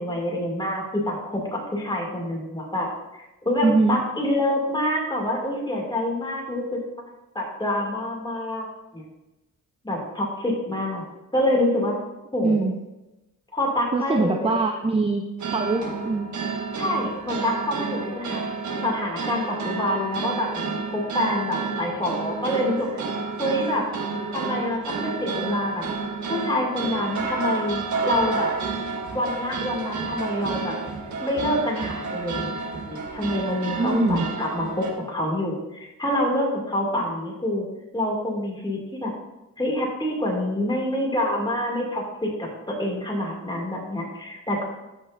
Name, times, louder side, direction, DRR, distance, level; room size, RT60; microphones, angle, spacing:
voice 1, 0.0-2.9 3.1-6.8 7.3-8.6 8.9-9.0 9.8-11.0 11.3-11.9 12.3-12.6 13.5-14.5 16.8-18.5 18.8-22.9 23.4-23.8 24.3-25.8 26.3-28.5 29.1-30.8 31.2-32.5 32.9-37.6 37.9-39.1 39.6-44.6, left 1 dB, 15° left, -2 dB, 2.4 m, -26 dB
voice 2, 3.6-4.0 12.4-12.7 13.9-16.3 33.8-34.2, right 3 dB, 15° right, 4 dB, 0.5 m, -23 dB
sound 1, 15.4-34.9, right 4 dB, 60° right, 1.4 m, -30 dB
13.5 x 5.3 x 2.6 m, 1.0 s
cardioid pair, 105°, 33 cm